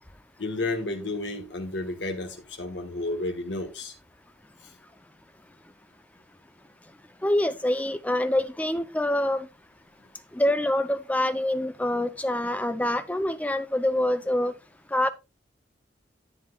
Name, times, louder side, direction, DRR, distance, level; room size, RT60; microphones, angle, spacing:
voice 1, 0.4-3.9, left 2 dB, 75° left, 1.4 m, -31 dB
voice 2, 7.2-9.5 10.3-14.5 14.9-15.1, left 1 dB, 10° left, 0.5 m, -25 dB
10.5 x 7.9 x 2.3 m
head